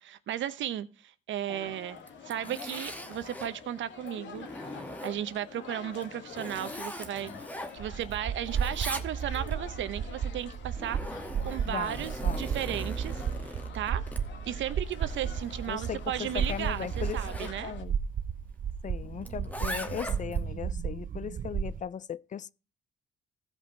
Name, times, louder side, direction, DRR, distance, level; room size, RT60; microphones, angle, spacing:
voice 1, 0.0-2.0 2.2-4.5 5.0-7.3 7.7-11.0 11.4-14.0 14.5-17.7, right 11 dB, 75° right, 0.9 m, -35 dB
sound 1, 1.5-17.8, left 6 dB, 70° left, 1.7 m, -48 dB
Zipper (clothing), 2.0-3.6 4.1-5.4 5.9-8.1 8.4-9.5 10.4-17.6 19.2-20.4, equal, 10° left, 1.2 m, -42 dB
sound 2, 7.8-21.8, right 7 dB, 45° right, 0.5 m, -34 dB
voice 2, 11.7-12.9 15.7-18.0 18.8-22.5, left 8 dB, 40° left, 0.4 m, -38 dB
15.5 x 5.4 x 4.1 m
cardioid pair, 90°, 20 cm